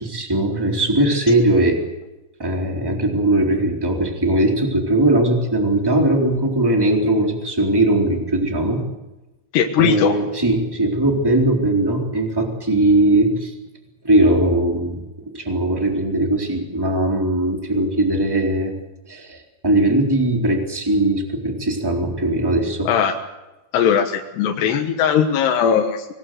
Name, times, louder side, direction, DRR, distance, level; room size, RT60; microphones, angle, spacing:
voice 1, 0.0-1.8 2.4-8.9 9.8-13.5 14.0-15.0 15.3-18.7 19.1-22.9, right 1 dB, 5° right, 2 dB, 3.4 m, -19 dB
voice 2, 9.5-10.1 22.9-23.1 23.7-26.1, left 8 dB, 70° left, 4 dB, 3.4 m, -19 dB
25.5 x 20.5 x 7.9 m, 1.0 s
omnidirectional pair, 5.3 m